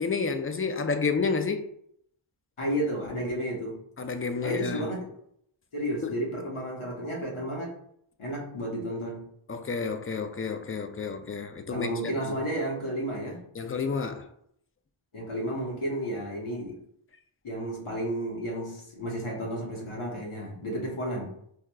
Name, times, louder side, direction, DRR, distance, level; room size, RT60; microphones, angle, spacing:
voice 1, 0.0-1.6 4.0-4.9 6.0-6.1 9.5-11.9 12.3-12.4 13.6-14.3, left 5 dB, 30° left, 0.3 m, -30 dB
voice 2, 2.6-3.8 4.4-5.0 5.7-7.7 8.2-9.2 11.7-13.4 15.1-16.8 17.4-21.3, right 1 dB, 90° left, 1.1 m, -32 dB
4.6 x 2.3 x 2.2 m
wide cardioid pair, 40°, 49 cm